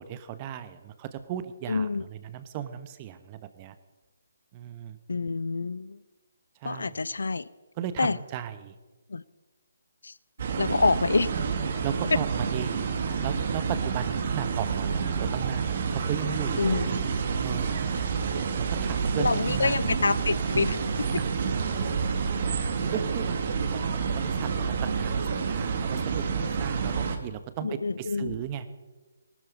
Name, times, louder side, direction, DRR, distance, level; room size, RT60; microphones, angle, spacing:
voice 1, 0.0-3.7 4.5-5.0 6.6-6.9 7.8-8.7 11.8-16.8 17.4-17.8 18.6-19.8 20.1-20.2 21.2-21.3 22.9-28.7, right 10 dB, 25° right, 12 dB, 1.1 m, -36 dB
voice 2, 1.7-2.0 5.1-6.0 6.6-7.5 8.0-8.2 9.1-9.2 10.0-10.1 10.6-11.3 16.6-16.9 19.2-21.1 27.6-28.4, left 4 dB, 80° left, 19 dB, 0.6 m, -27 dB
sound 1, 10.4-27.2, right 5 dB, 50° right, 1.8 m, -28 dB
19.0 x 13.0 x 5.3 m, 1.2 s
figure-of-eight pair, 150°, 0 cm